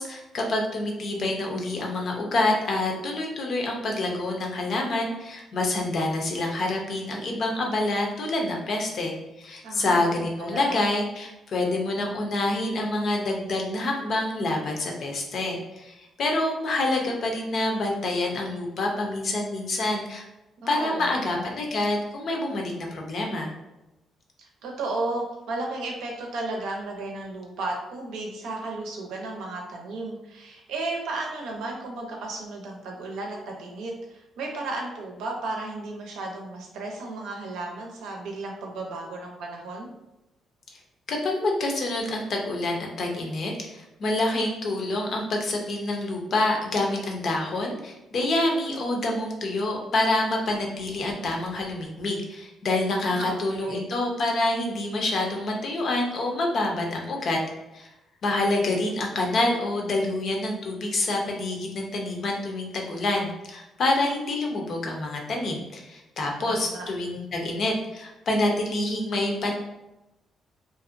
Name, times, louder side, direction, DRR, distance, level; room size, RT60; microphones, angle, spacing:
voice 1, 0.0-20.2 20.7-23.5 41.1-57.4 57.7-57.9 58.2-69.6, left 2 dB, 60° left, 1 dB, 0.6 m, -27 dB
voice 2, 9.6-10.9 20.6-21.5 24.4-39.9 52.9-53.9 66.4-66.9, right 2 dB, 85° right, 0 dB, 0.6 m, -34 dB
2.6 x 2.1 x 2.5 m, 0.95 s
cardioid pair, 90°, 0 cm